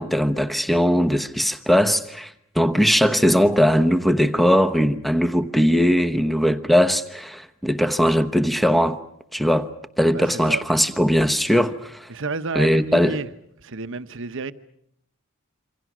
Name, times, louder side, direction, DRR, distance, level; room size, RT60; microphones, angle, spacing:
voice 1, 0.0-9.0 9.3-9.7 10.0-12.1 12.5-13.2, equal, ahead, 1.0 m, -19 dB
voice 2, 10.1-10.6 12.1-13.3 13.6-14.5, right 3 dB, 65° right, 1.0 m, -30 dB
27.5 x 26.0 x 6.2 m
head